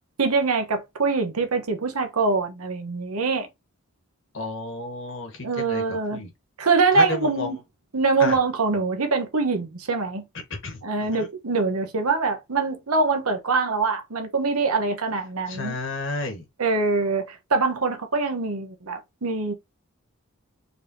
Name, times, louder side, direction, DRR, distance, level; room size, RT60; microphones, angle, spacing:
voice 1, 0.2-3.5 5.4-6.2 6.6-7.6 7.9-10.2 10.8-15.8 16.6-19.5, right 4 dB, 90° right, 1.1 m, -24 dB
voice 2, 4.3-5.8 6.1-6.3 6.9-7.5 8.2-8.4 10.6-10.8 11.1-11.3 15.5-16.4, left 2 dB, 60° left, 1.6 m, -31 dB
4.2 x 3.5 x 2.7 m
head